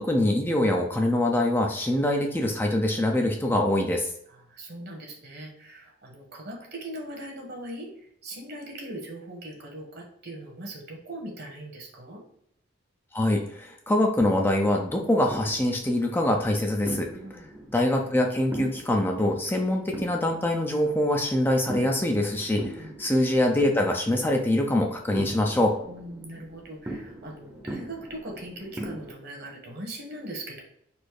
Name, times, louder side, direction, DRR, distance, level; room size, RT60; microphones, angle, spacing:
voice 1, 0.0-4.1 13.1-17.1 17.7-25.7, left 1 dB, 10° left, 2 dB, 0.4 m, -24 dB
voice 2, 4.3-7.9 8.2-12.2 17.1-17.5 22.8-22.9 25.9-30.6, right 1 dB, 55° right, 0 dB, 1.3 m, -40 dB
sound 1, 14.6-29.1, right 1 dB, 15° right, 0.8 m, -41 dB
4.2 x 2.7 x 4.7 m, 0.71 s
head